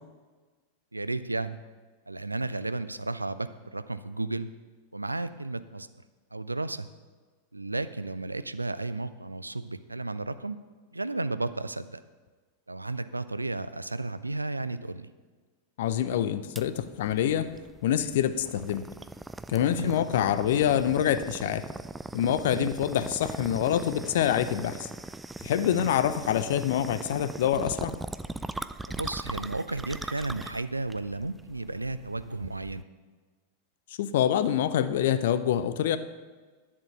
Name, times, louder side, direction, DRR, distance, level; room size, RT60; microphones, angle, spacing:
voice 1, 0.9-1.6 2.1-4.5 4.9-5.9 6.3-6.9 7.5-10.6 10.9-12.0 12.7-15.1 19.6-20.0 22.4-22.7 25.6-25.9 28.9-32.8, right 2 dB, 85° right, 13 dB, 0.4 m, -33 dB
voice 2, 15.8-17.5 17.8-18.8 19.5-21.6 22.1-24.9 25.4-27.9 34.0-36.0, left 10 dB, 55° left, 12 dB, 0.6 m, -26 dB
sound 1, 16.6-32.8, right 2 dB, 10° right, 0.4 m, -40 dB
10.5 x 7.5 x 5.9 m, 1.4 s
figure-of-eight pair, 90°, 0 cm